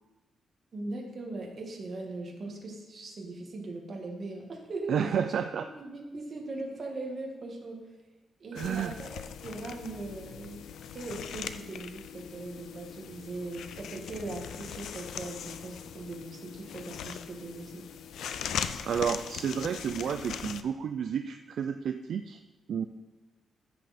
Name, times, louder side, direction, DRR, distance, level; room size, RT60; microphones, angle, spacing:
voice 1, 0.7-5.1 5.7-7.8 8.4-10.6 10.9-17.8, right 2 dB, 40° right, 0 dB, 1.7 m, -40 dB
voice 2, 4.9-5.7 8.5-8.9 18.9-22.4 22.7-22.8, right 7 dB, 60° right, 8 dB, 0.4 m, -31 dB
sound 1, 8.6-20.6, left 8 dB, 90° left, 0.5 m, -40 dB
14.0 x 6.3 x 4.2 m, 1.2 s
wide cardioid pair, 165°, 0 cm